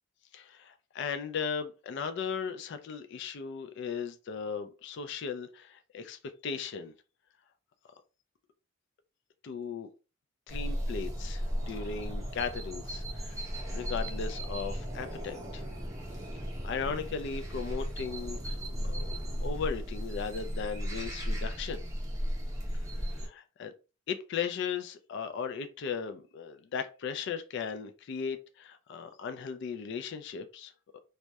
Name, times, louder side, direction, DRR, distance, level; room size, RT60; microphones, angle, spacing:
voice 1, 0.3-6.9 9.4-9.9 10.5-13.4 13.7-15.6 16.6-18.6 18.9-21.8 23.2-23.7 24.1-31.0, left 6 dB, 55° left, 0.3 m, -37 dB
sound 1, 10.5-23.3, equal, 15° right, 0.5 m, -35 dB
2.2 x 2.1 x 2.7 m
head